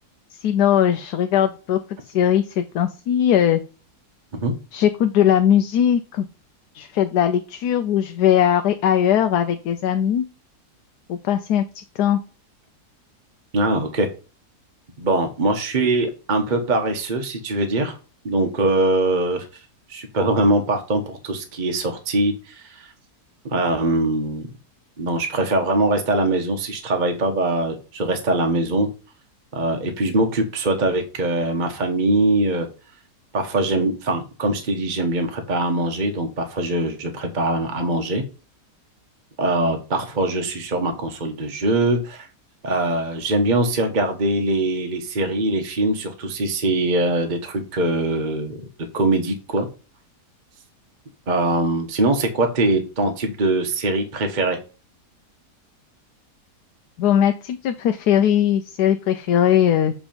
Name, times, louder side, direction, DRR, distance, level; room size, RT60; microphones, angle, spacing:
voice 1, 0.3-3.6 4.7-6.3 6.7-10.2 11.1-12.2 57.0-59.9, left 10 dB, 75° left, 7 dB, 1.2 m, -19 dB
voice 2, 13.5-14.1 15.0-18.0 18.2-19.6 19.9-22.9 23.4-24.5 25.0-28.9 29.5-32.7 33.3-38.2 39.4-42.3 42.6-48.6 48.9-49.7 51.3-54.6, right 2 dB, 35° right, 4 dB, 1.1 m, -22 dB
8.2 x 3.7 x 5.1 m, 0.34 s
omnidirectional pair, 1.7 m